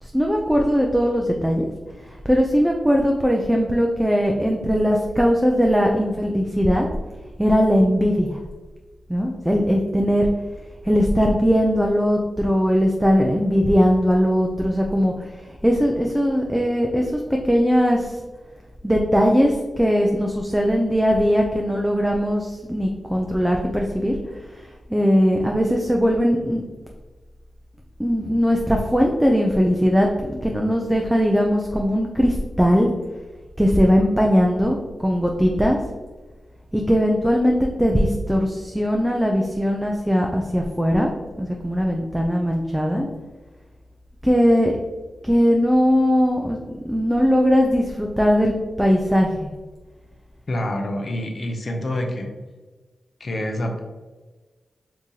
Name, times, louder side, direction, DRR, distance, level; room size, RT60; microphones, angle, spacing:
voice 1, 0.0-1.7 2.0-6.9 7.4-8.4 9.1-10.3 10.8-18.2 18.8-24.1 24.5-26.6 28.0-32.9 33.6-35.8 36.7-41.1 41.4-43.1 44.2-44.7 45.2-49.5, equal, 5° right, 1 dB, 0.4 m, -20 dB
voice 2, 50.5-52.3 53.2-53.8, left 1 dB, 60° left, 3 dB, 0.6 m, -27 dB
2.8 x 2.6 x 3.7 m, 1.3 s
cardioid pair, 45°, 0 cm